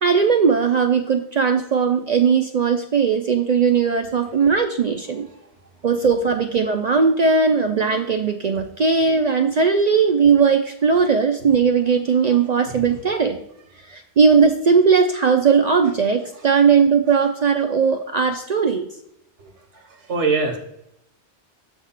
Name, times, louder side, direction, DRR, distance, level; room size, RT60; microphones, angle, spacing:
voice 1, 0.0-5.3 5.8-13.4 13.9-18.9, right 5 dB, 60° right, 6 dB, 0.4 m, -18 dB
voice 2, 19.4-19.8 20.1-20.6, right 4 dB, 85° right, 3 dB, 1.5 m, -24 dB
7.3 x 3.5 x 5.7 m, 0.78 s
omnidirectional pair, 1.2 m